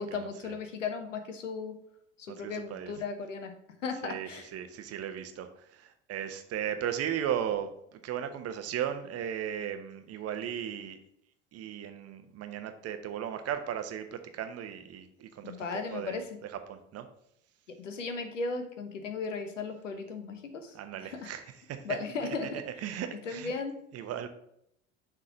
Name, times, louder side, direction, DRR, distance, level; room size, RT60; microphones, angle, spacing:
voice 1, 0.0-1.8 2.2-3.5 3.8-4.5 15.4-16.4 17.7-21.3 21.8-22.8 23.2-23.8, left 4 dB, 80° left, 7 dB, 1.0 m, -36 dB
voice 2, 2.3-2.9 4.0-5.5 6.1-7.7 8.0-11.0 11.5-15.5 15.9-16.2 16.7-17.1 20.7-21.4 21.7-21.8 22.8-23.5 23.9-24.3, right 9 dB, 40° right, 8 dB, 0.9 m, -36 dB
6.6 x 3.7 x 5.6 m, 0.74 s
figure-of-eight pair, 65°, 36 cm